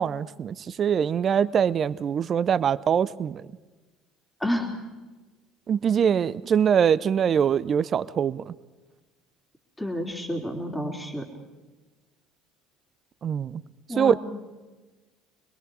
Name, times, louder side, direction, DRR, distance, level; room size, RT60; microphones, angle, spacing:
voice 1, 0.0-3.4 5.7-8.5 13.2-13.6 14.0-14.2, right 8 dB, 40° right, 17 dB, 0.6 m, -23 dB
voice 2, 4.4-4.7 9.8-11.2 13.9-14.2, left 1 dB, 10° left, 2 dB, 3.5 m, -29 dB
25.0 x 22.0 x 4.8 m, 1.2 s
hypercardioid pair, 60°, 0 cm